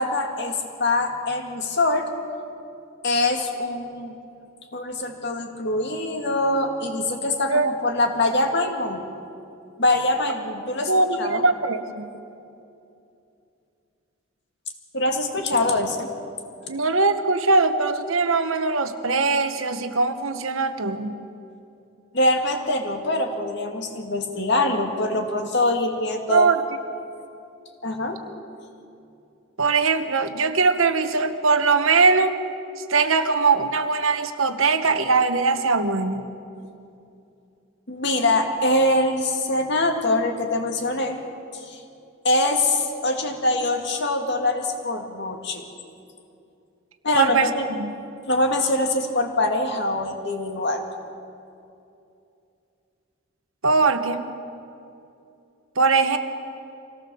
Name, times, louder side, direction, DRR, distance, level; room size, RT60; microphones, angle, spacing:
voice 1, 0.0-2.1 3.0-4.2 4.7-9.0 9.8-10.9 11.2-11.4 14.9-16.1 22.1-26.5 27.8-28.2 37.9-41.2 41.5-41.8 42.2-45.7 47.0-47.7 48.3-50.8, left 2 dB, 55° left, 4 dB, 2.2 m, -23 dB
voice 2, 10.9-12.1 16.7-21.2 26.3-26.6 29.6-32.3 32.9-36.2 47.2-47.5 47.8-47.9 53.6-54.2 55.8-56.2, right 4 dB, 75° right, 8 dB, 1.3 m, -21 dB
25.0 x 17.0 x 7.1 m, 2.7 s
head